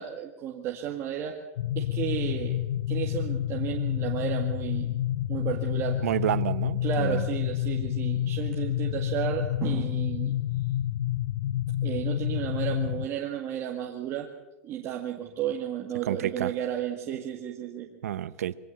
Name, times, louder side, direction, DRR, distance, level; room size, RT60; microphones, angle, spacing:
voice 1, 0.0-1.4 1.8-2.6 2.9-5.0 5.3-6.1 6.8-10.4 11.8-14.3 14.6-17.9, right 10 dB, 35° right, 1 dB, 2.0 m, -33 dB
sound 1, 1.6-13.1, left 12 dB, 70° left, 0.7 m, -29 dB
voice 2, 6.0-7.2 16.0-16.5 18.0-18.5, right 11 dB, 85° right, 15 dB, 1.0 m, -29 dB
23.0 x 18.0 x 7.0 m, 1.0 s
supercardioid pair, 140°, 8 cm